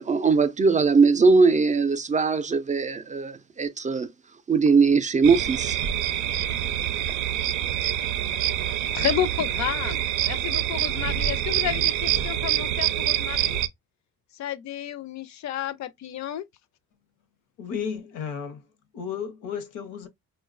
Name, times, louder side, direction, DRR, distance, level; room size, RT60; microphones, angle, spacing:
voice 1, 0.0-4.1 4.5-5.8, right 4 dB, 25° right, 0.3 m, -20 dB
sound 1, 5.2-13.7, right 11 dB, 85° right, 0.5 m, -26 dB
voice 2, 8.9-13.6 14.4-16.4, left 11 dB, 65° left, 0.5 m, -31 dB
voice 3, 17.6-18.6 18.9-20.1, left 7 dB, 90° left, 0.8 m, -33 dB
4.5 x 2.2 x 2.4 m
cardioid pair, 90°, 30 cm